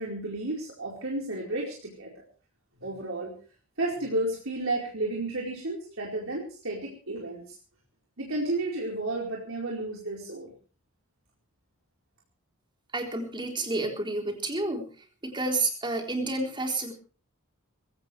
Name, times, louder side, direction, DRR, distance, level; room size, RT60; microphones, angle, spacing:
voice 1, 0.0-2.1 2.8-3.3 3.8-7.6 8.2-10.5, right 2 dB, 70° right, -2 dB, 4.6 m, -32 dB
voice 2, 12.9-14.9 15.2-16.9, right 2 dB, 25° right, 2 dB, 3.9 m, -30 dB
21.0 x 16.5 x 3.4 m, 0.38 s
head